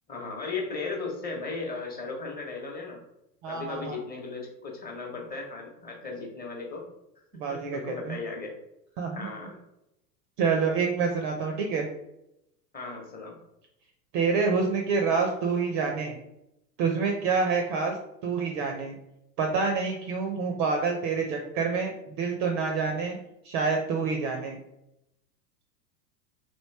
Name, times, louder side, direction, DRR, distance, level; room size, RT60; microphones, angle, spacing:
voice 1, 0.1-3.0 3.5-6.9 7.3-8.5 9.1-9.6 12.7-13.4, left 4 dB, 20° left, 0 dB, 0.8 m, -36 dB
voice 2, 3.4-4.0 7.3-8.2 9.0-9.3 10.4-11.9 14.1-16.2 16.8-18.0 18.2-18.9 19.4-23.2 23.4-24.6, right 5 dB, 35° right, 3 dB, 0.4 m, -27 dB
3.0 x 2.6 x 3.2 m, 0.85 s
hypercardioid pair, 95°, 49 cm